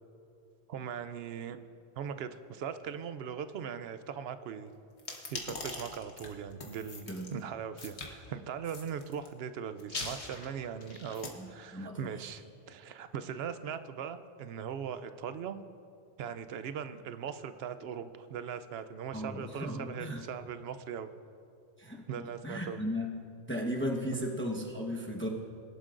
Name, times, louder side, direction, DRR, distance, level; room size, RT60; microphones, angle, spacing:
voice 1, 0.7-1.6 1.9-4.7 5.3-15.6 16.2-21.1 22.1-22.8 24.1-24.3, right 7 dB, 70° right, 11 dB, 0.8 m, -40 dB
sound 1, 5.0-7.3 7.8-8.1 8.6-9.3 9.8-11.3, left 3 dB, 85° left, 1.5 m, -41 dB
voice 2, 11.4-12.1 19.1-20.2 21.8-22.0 22.4-23.1 23.5-25.3, equal, 10° left, -1 dB, 0.9 m, -35 dB
21.5 x 11.0 x 2.5 m, 2.5 s
omnidirectional pair, 1.1 m